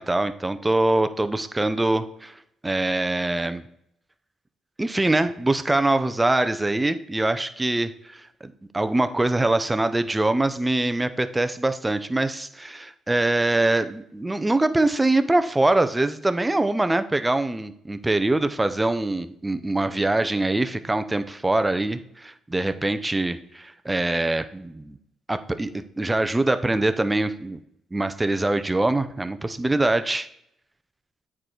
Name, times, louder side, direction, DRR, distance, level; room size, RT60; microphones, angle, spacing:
voice 1, 0.0-2.3 2.6-3.6 4.8-25.0 25.3-27.6 27.9-30.3, right 2 dB, 15° right, 10 dB, 0.6 m, -23 dB
8.8 x 4.9 x 4.5 m, 0.74 s
cardioid pair, 90°, 0 cm